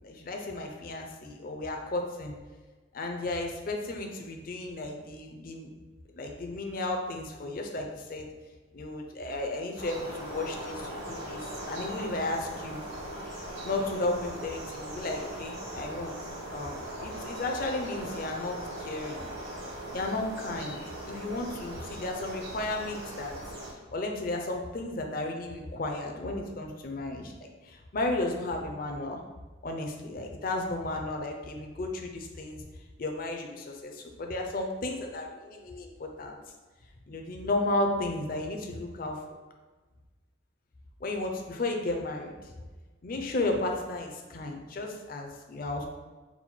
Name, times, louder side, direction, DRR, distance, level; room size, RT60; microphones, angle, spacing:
voice 1, 0.0-2.3 2.9-5.7 6.1-8.3 8.7-12.8 13.6-16.1 16.5-19.3 19.9-20.8 21.1-23.4 23.9-27.3 27.6-29.2 29.6-32.6 33.0-36.4 37.1-39.4 41.0-42.4 43.0-45.9, left 2 dB, 45° left, 2 dB, 0.5 m, -34 dB
sound 1, 9.8-23.7, right 1 dB, 55° right, 1.3 m, -40 dB
4.1 x 2.2 x 4.3 m, 1.3 s
head